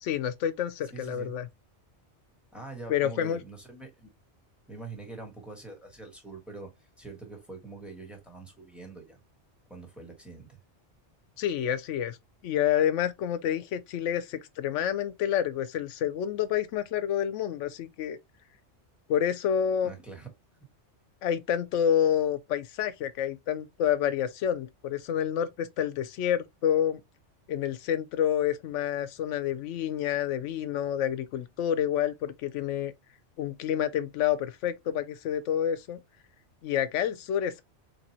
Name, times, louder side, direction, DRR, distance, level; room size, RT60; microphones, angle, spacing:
voice 1, 0.0-1.5 2.9-3.4 11.4-12.2 12.4-18.2 19.1-19.9 21.2-27.0 27.5-32.9 33.4-36.0 36.6-37.6, left 9 dB, 90° left, 0.9 m, -28 dB
voice 2, 0.9-1.3 2.5-4.1 4.7-9.2 9.7-10.6 19.8-20.3, right 3 dB, ahead, 1.4 m, -44 dB
4.0 x 3.2 x 2.8 m
omnidirectional pair, 1.2 m